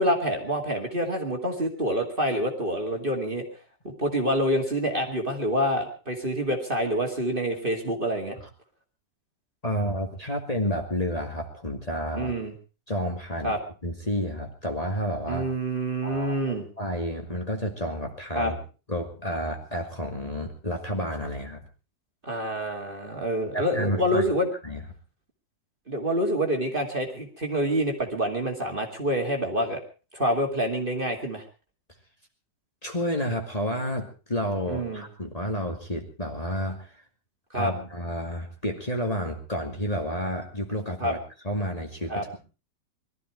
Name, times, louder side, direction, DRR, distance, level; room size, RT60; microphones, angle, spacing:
voice 1, 0.0-3.4 3.8-8.4 12.1-12.5 13.4-13.6 15.3-16.7 18.4-18.5 22.2-24.5 25.9-29.8 30.1-31.4 34.7-35.0 37.5-37.7 41.0-41.1 42.1-42.2, equal, 30° right, 2 dB, 2.5 m, -27 dB
voice 2, 9.6-12.3 12.9-13.6 13.8-15.5 16.0-16.4 16.8-18.6 18.9-21.6 23.5-24.2 24.6-24.8 32.8-36.9 37.5-42.4, equal, 20° left, 2 dB, 2.4 m, -30 dB
21.5 x 13.5 x 4.6 m, 0.35 s
omnidirectional pair, 1.9 m